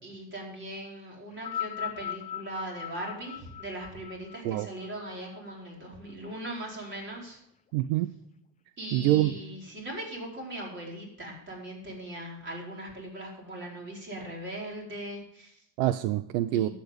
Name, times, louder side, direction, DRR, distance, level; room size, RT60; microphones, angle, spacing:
voice 1, 0.0-7.4 8.8-15.6 16.5-16.7, right 1 dB, 25° right, -1 dB, 4.6 m, -39 dB
sound 1, 1.3-5.9 6.8-6.9, left 11 dB, 20° left, 0.6 m, -39 dB
voice 2, 7.7-8.1 8.9-9.3 15.8-16.7, right 14 dB, 75° right, 13 dB, 0.7 m, -25 dB
12.0 x 8.7 x 5.2 m, 0.74 s
supercardioid pair, 125°, 41 cm